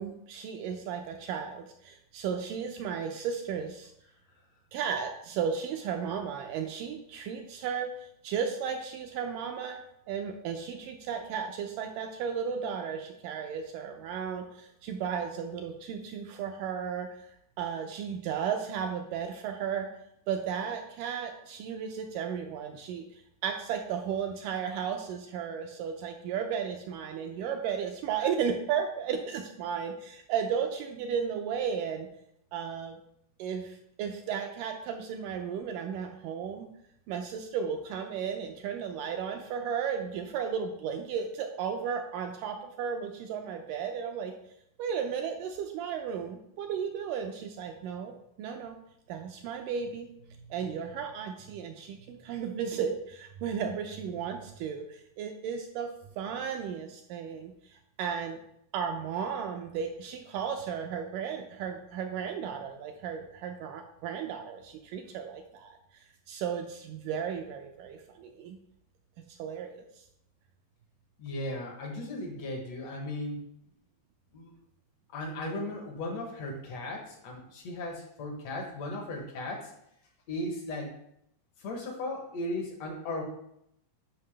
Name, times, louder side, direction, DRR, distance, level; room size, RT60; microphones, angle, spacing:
voice 1, 0.0-3.9 4.7-9.8 10.1-17.2 17.6-19.9 20.3-23.0 23.4-32.1 32.5-33.0 33.4-36.7 37.1-44.3 44.8-48.8 49.1-50.1 50.4-55.9 56.2-58.4 58.7-65.8 66.3-68.6 69.4-69.9, right 7 dB, 80° right, 4 dB, 2.0 m, -34 dB
voice 2, 71.2-73.5 74.3-74.5 75.1-79.7 80.3-80.9 81.6-83.2, left 1 dB, 65° left, 2 dB, 1.7 m, -36 dB
9.4 x 5.7 x 3.3 m, 0.75 s
omnidirectional pair, 4.2 m